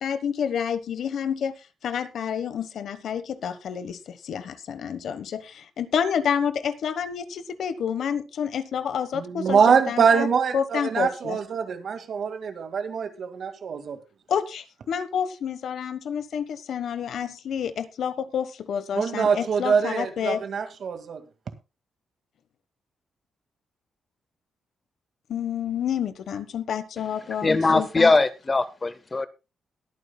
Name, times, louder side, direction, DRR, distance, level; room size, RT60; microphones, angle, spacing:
voice 1, 0.0-10.3 10.5-11.4 14.3-20.4 25.3-28.1, left 8 dB, 65° left, 1.2 m, -29 dB
voice 2, 9.1-14.0 18.9-21.2, right 6 dB, 55° right, 2.0 m, -24 dB
voice 3, 27.4-29.3, left 3 dB, 25° left, 0.7 m, -21 dB
22.0 x 9.3 x 2.3 m
cardioid pair, 130°, 0 cm